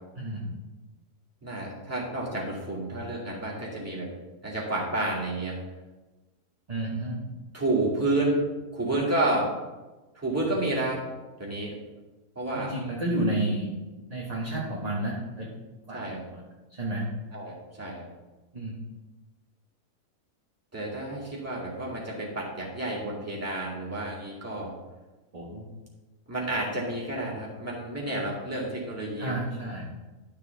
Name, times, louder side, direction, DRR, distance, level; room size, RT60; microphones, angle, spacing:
voice 1, 0.1-0.5 6.7-7.3 12.5-13.7 14.1-15.5 15.9-16.0 16.3-16.4 16.7-17.1 18.5-18.7 25.3-25.7 28.1-28.2 29.2-29.9, right 1 dB, 25° right, -4 dB, 1.3 m, -31 dB
voice 2, 1.4-4.1 4.4-5.6 7.5-8.4 8.7-9.5 10.1-11.0 11.4-11.8 12.4-12.8 15.9-16.2 17.3-18.1 20.7-24.7 26.3-29.3, right 2 dB, 10° right, -5 dB, 2.2 m, -30 dB
12.0 x 6.8 x 3.5 m, 1.2 s
omnidirectional pair, 1.6 m